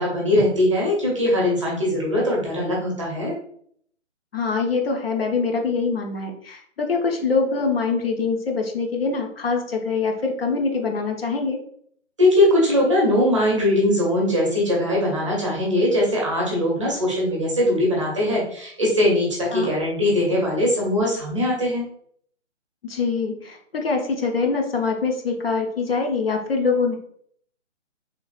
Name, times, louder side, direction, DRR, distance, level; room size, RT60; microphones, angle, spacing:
voice 1, 0.0-3.3 12.2-21.8, left 1 dB, 25° right, -3 dB, 0.6 m, -21 dB
voice 2, 4.3-11.6 19.5-19.7 22.8-27.0, left 4 dB, 55° left, 3 dB, 0.6 m, -24 dB
3.3 x 2.3 x 2.3 m, 0.63 s
hypercardioid pair, 160°, 36 cm